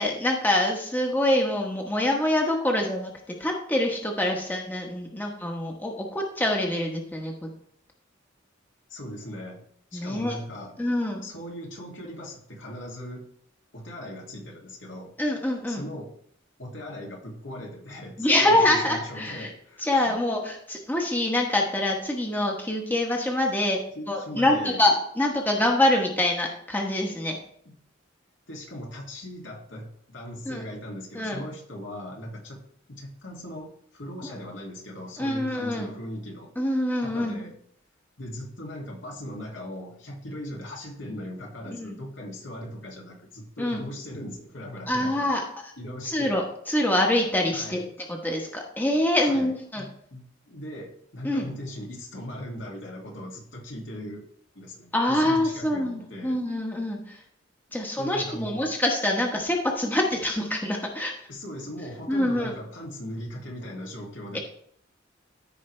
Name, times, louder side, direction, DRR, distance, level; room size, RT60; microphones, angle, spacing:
voice 1, 0.0-3.1 3.4-7.5 9.9-10.4 10.8-11.2 15.2-15.8 18.2-19.5 19.8-23.8 24.1-27.4 30.5-30.6 31.1-31.4 34.2-34.4 35.2-35.9 36.6-37.4 41.7-41.9 43.6-43.8 44.9-45.7 46.0-49.8 51.2-51.5 54.9-57.2 57.7-61.1 62.1-62.6 64.3-64.4, left 1 dB, 10° left, 1 dB, 1.1 m, -25 dB
voice 2, 8.9-10.8 11.2-13.3 13.7-15.1 15.7-16.1 16.6-20.2 23.9-24.8 28.5-32.6 32.9-36.5 37.0-37.5 38.2-45.3 45.8-46.4 47.5-47.9 49.2-54.3 54.5-56.4 58.0-58.7 61.3-64.4, left 1 dB, 70° left, -1 dB, 2.3 m, -39 dB
14.5 x 4.8 x 3.3 m, 0.66 s
head